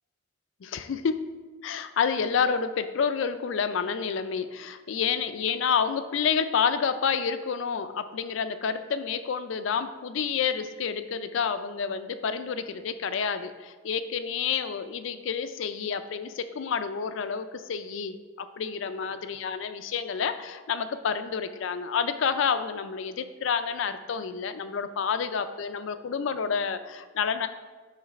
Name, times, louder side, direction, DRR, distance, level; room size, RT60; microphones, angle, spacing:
voice 1, 0.6-1.3 1.6-27.5, left 6 dB, 70° left, 11 dB, 0.4 m, -29 dB
8.2 x 3.2 x 4.8 m, 1.4 s
head